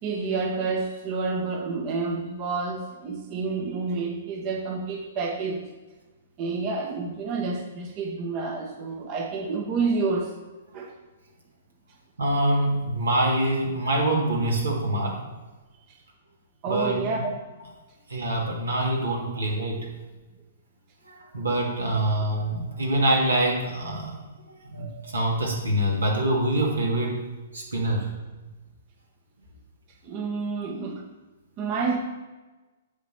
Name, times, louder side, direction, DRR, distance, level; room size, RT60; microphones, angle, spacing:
voice 1, 0.0-5.7 6.4-10.3 10.7-10.9 16.6-17.3 19.7-19.8 30.0-31.0 31.6-32.0, right 4 dB, 35° right, 2 dB, 1.1 m, -29 dB
voice 2, 12.2-15.2 16.7-17.0 18.1-19.9 21.0-24.1 24.7-27.2 27.5-28.1, right 1 dB, 80° right, -1 dB, 2.3 m, -25 dB
8.0 x 4.2 x 7.0 m, 1.2 s
figure-of-eight pair, 120°, 0 cm